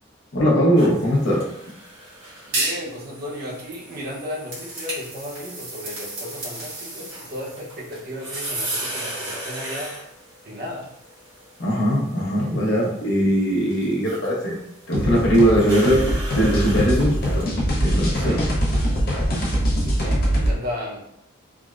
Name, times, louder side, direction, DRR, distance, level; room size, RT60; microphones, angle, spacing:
voice 1, 0.3-1.4 11.6-14.6 14.9-17.5 17.8-18.4, equal, 75° left, -4 dB, 0.9 m, -20 dB
sound 1, 0.8-17.5, right 1 dB, 80° right, 1.3 m, -35 dB
voice 2, 2.5-10.0 10.4-10.9 18.1-18.4 19.8-21.1, left 1 dB, 50° right, -3 dB, 0.7 m, -34 dB
sound 2, 14.9-20.5, equal, 50° left, 0.7 m, -22 dB
3.5 x 2.0 x 2.4 m, 0.77 s
head